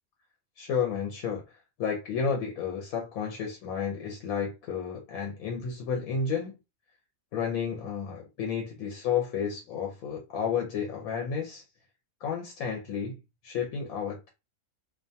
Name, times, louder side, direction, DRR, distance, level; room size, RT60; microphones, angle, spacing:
voice 1, 0.6-6.5 7.3-11.6 12.2-13.2 13.4-14.3, left 6 dB, 80° left, 1.1 m, -31 dB
2.5 x 2.2 x 2.7 m
omnidirectional pair, 1.5 m